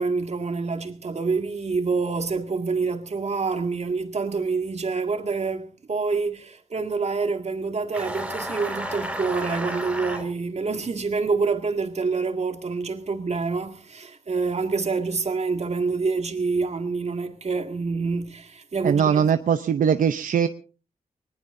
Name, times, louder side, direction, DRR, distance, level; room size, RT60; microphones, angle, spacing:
voice 1, 0.0-19.3, right 4 dB, 55° right, 2.1 m, -27 dB
sound 1, 7.9-10.2, equal, 5° right, 4.9 m, -32 dB
voice 2, 18.8-20.5, right 8 dB, 85° right, 0.7 m, -21 dB
21.5 x 20.0 x 2.7 m
cardioid pair, 75°, 14 cm